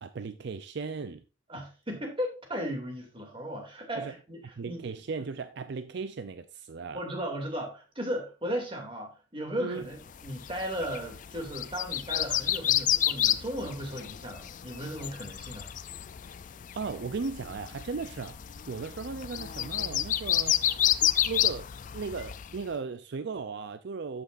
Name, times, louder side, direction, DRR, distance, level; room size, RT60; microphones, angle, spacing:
voice 1, 0.0-1.2 4.0-4.1 4.6-7.0 9.6-9.9 16.7-20.6 21.0-24.2, right 4 dB, 60° right, 0.5 m, -37 dB
voice 2, 1.5-4.8 6.9-15.7, equal, 30° right, 2.5 m, -36 dB
sound 1, 10.1-22.6, left 12 dB, 40° left, 0.4 m, -30 dB
13.5 x 6.0 x 2.5 m
head